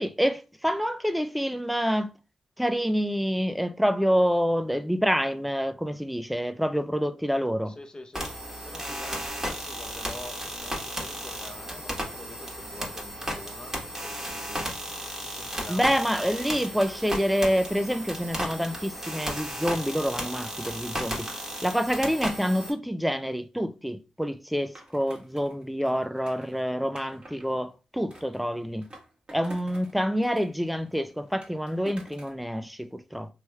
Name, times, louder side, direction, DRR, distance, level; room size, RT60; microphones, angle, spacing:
voice 1, 0.0-2.1 2.6-7.8 15.7-21.3 21.6-28.9 29.3-33.3, equal, ahead, 0.4 m, -27 dB
voice 2, 7.7-8.3 8.6-13.8 14.0-14.7 15.2-16.1 25.9-26.1 26.4-27.2, left 2 dB, 30° left, 0.7 m, -46 dB
sound 1, 8.1-22.7, equal, 20° right, 1.2 m, -35 dB
Skateboard, 24.8-27.5 28.1-29.9 30.2-32.4, right 1 dB, 45° right, 1.4 m, -49 dB
3.1 x 3.0 x 2.2 m
cardioid pair, 55°, 3 cm